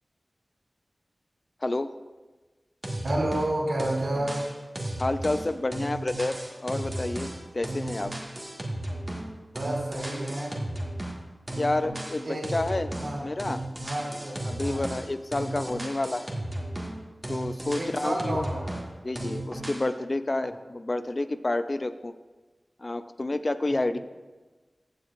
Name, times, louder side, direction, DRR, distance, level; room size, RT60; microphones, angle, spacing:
voice 1, 1.6-1.9 5.0-8.1 11.6-12.9 13.2-13.6 14.5-16.3 17.3-18.5 19.0-22.1 22.8-24.0, left 2 dB, 40° left, 11 dB, 0.4 m, -29 dB
sound 1, 2.8-3.5 3.8-9.3 9.6-11.2 11.5-13.1 13.4-17.0 17.2-18.9 19.2-19.9, right 1 dB, 20° right, 1.7 m, -35 dB
voice 2, 3.0-4.4 9.5-10.6 12.2-12.5 12.9-13.2 13.8-14.8 17.7-18.8, right 1 dB, 65° right, -3 dB, 2.8 m, -30 dB
14.5 x 7.8 x 2.5 m, 1.3 s
wide cardioid pair, 65°, 0 cm